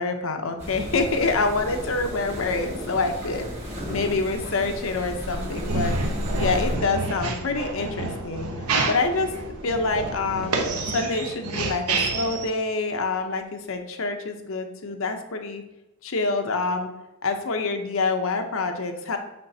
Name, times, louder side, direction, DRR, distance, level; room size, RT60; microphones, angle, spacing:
voice 1, 0.0-6.0 6.3-8.5 8.8-9.3 9.6-10.6 10.9-15.6 16.0-16.9 17.2-19.2, left 3 dB, 65° left, 6 dB, 0.7 m, -26 dB
sound 1, 0.6-6.8, equal, 30° right, 1.6 m, -32 dB
Subway metro underground, 5.4-10.8, left 1 dB, 55° right, 2.2 m, -40 dB
sound 2, 5.5-12.5, right 3 dB, 90° right, 0.9 m, -28 dB
9.6 x 3.8 x 2.7 m, 0.98 s
head